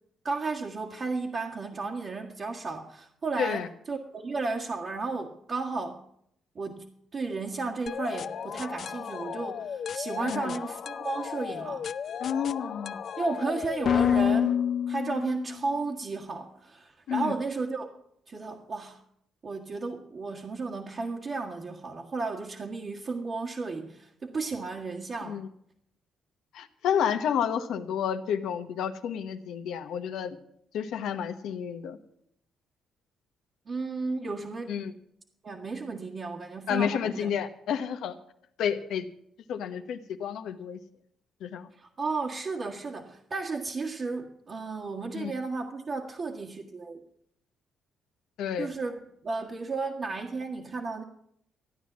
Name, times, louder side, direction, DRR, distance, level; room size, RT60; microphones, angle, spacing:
voice 1, 0.2-6.0 6.5-6.8 7.1-11.9 13.2-14.6 14.9-17.9 18.3-19.0 19.4-25.4 33.7-34.8 35.4-37.3 41.8-47.0 48.6-49.0 49.2-51.0, right 3 dB, 45° right, -2 dB, 1.7 m, -33 dB
sound 1, 7.9-15.6, left 8 dB, 55° left, 0.5 m, -30 dB
voice 2, 10.2-10.5 12.2-13.0 17.1-17.3 25.3-25.5 26.5-30.4 30.7-32.0 34.7-34.9 36.7-38.1 38.6-39.0 39.5-40.8 41.4-41.7 45.1-45.3 48.4-48.7, left 8 dB, 80° left, 8 dB, 1.1 m, -30 dB
14.5 x 9.5 x 7.3 m, 0.72 s
cardioid pair, 90°, 0 cm